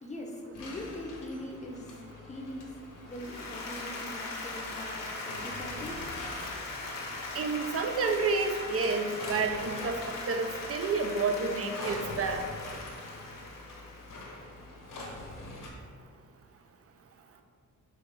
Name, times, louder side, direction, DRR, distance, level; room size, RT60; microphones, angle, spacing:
voice 1, 0.0-6.1 6.5-6.6, left 1 dB, 20° left, 0 dB, 0.7 m, -42 dB
sound 1, 0.5-15.7, left 2 dB, 70° left, 1.1 m, -45 dB
Applause, 3.1-14.4, left 2 dB, 90° left, 1.3 m, -40 dB
voice 2, 7.3-9.9 10.3-12.5, right 4 dB, 45° right, 5 dB, 0.5 m, -30 dB
5.0 x 4.0 x 5.3 m, 2.1 s
wide cardioid pair, 170°, 33 cm